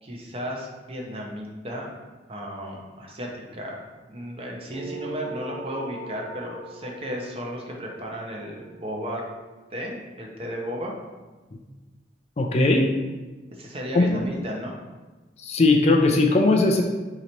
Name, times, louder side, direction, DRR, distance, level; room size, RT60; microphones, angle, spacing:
voice 1, 0.0-1.9 2.3-9.2 9.7-10.9 13.5-14.7, equal, 30° right, -1 dB, 0.7 m, -34 dB
sound 1, 4.7-9.5, right 2 dB, 75° right, 0.8 m, -40 dB
voice 2, 12.4-12.9 13.9-14.2 15.4-16.8, left 2 dB, 35° left, 3 dB, 0.4 m, -19 dB
3.9 x 2.9 x 4.4 m, 1.2 s
head